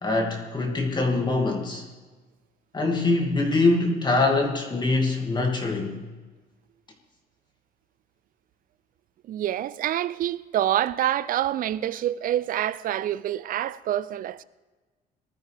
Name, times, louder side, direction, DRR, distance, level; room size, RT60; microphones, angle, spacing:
voice 1, 0.0-1.8 2.7-6.0, left 3 dB, 25° left, 2.4 m, -24 dB
voice 2, 9.3-14.4, right 12 dB, 55° right, 0.5 m, -27 dB
20.0 x 13.0 x 3.5 m
cardioid pair, 110°, 17 cm